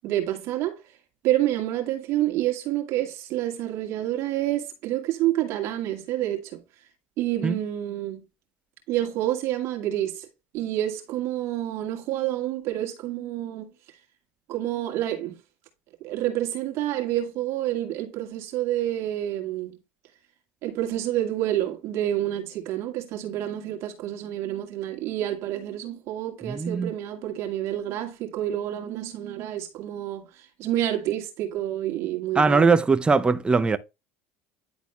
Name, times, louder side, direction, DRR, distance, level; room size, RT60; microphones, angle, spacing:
voice 1, 0.0-0.8 1.2-6.6 7.2-8.2 8.9-10.3 10.5-13.7 14.5-15.4 16.0-19.7 20.6-30.3 30.6-32.7, right 13 dB, 60° right, 2.2 m, -28 dB
voice 2, 26.4-26.9 32.3-33.8, right 4 dB, 20° right, 0.8 m, -20 dB
10.5 x 4.1 x 3.4 m
supercardioid pair, 95°, 5 cm